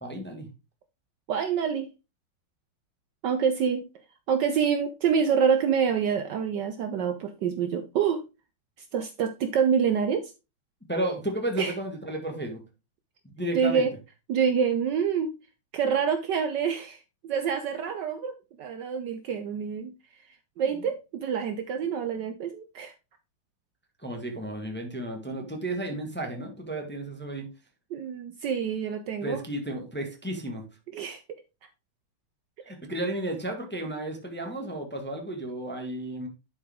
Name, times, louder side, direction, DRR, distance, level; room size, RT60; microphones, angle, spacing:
voice 1, 0.0-0.5 10.9-12.6 13.2-13.9 24.0-27.5 29.2-30.6 32.7-36.3, right 1 dB, 5° left, 3 dB, 1.1 m, -33 dB
voice 2, 1.3-1.9 3.2-3.9 4.3-8.2 8.9-10.3 11.6-11.7 13.5-13.9 14.3-15.3 15.7-19.9 20.6-22.9 27.9-29.4 30.9-31.2, right 7 dB, 65° right, 8 dB, 1.2 m, -26 dB
11.0 x 4.8 x 3.5 m, 0.28 s
omnidirectional pair, 2.3 m